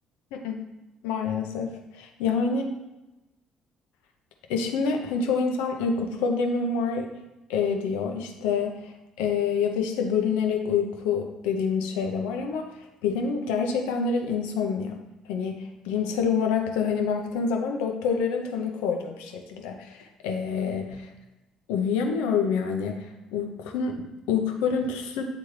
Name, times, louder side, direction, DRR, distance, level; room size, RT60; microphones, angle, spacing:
voice 1, 0.3-0.6 1.0-2.6 4.5-7.1 7.5-15.0 15.3-21.1 21.7-25.2, left 5 dB, 75° left, 3 dB, 0.7 m, -27 dB
8.6 x 3.5 x 3.1 m, 0.99 s
hypercardioid pair, 50°, 3 cm